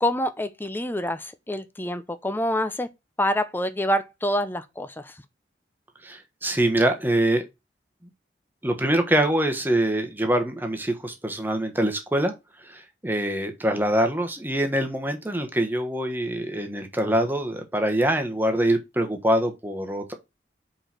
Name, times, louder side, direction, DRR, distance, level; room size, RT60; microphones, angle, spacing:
voice 1, 0.0-2.9 3.2-5.1, equal, 10° left, 0.7 m, -26 dB
voice 2, 6.0-7.4 8.6-12.3 12.6-20.1, right 1 dB, 10° right, 1.2 m, -24 dB
5.0 x 4.6 x 5.9 m
head